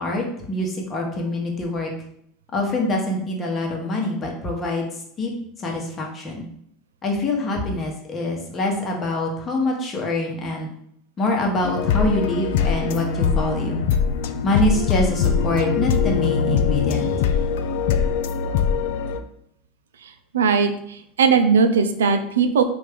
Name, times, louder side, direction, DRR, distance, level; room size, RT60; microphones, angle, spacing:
voice 1, 0.0-1.9 2.5-4.9 5.2-5.3 5.6-6.5 7.0-10.7 11.2-13.8 14.4-17.2, left 1 dB, 35° left, 0 dB, 1.0 m, -25 dB
sound 1, 11.6-19.2, left 6 dB, 70° left, 0.3 m, -22 dB
voice 2, 20.0-22.6, right 5 dB, 85° right, 8 dB, 0.3 m, -19 dB
3.2 x 2.5 x 3.5 m, 0.70 s
hypercardioid pair, 85°, 0 cm